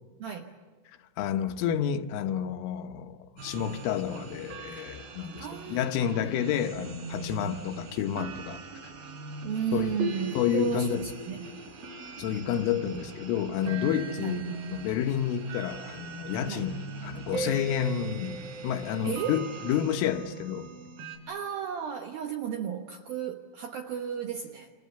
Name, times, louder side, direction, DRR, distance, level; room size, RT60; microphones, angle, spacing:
voice 1, 0.2-0.5 5.4-6.3 7.4-7.6 9.4-11.7 14.2-14.5 16.4-16.7 19.0-19.5 21.3-24.7, right 8 dB, 75° right, 2.2 m, -34 dB
voice 2, 1.2-8.6 9.7-10.0 10.4-11.0 12.2-16.8 17.0-20.7, left 9 dB, 80° left, 3.5 m, -30 dB
sound 1, 3.4-21.2, right 3 dB, 50° right, 4.9 m, -40 dB
29.0 x 29.0 x 6.9 m
omnidirectional pair, 5.8 m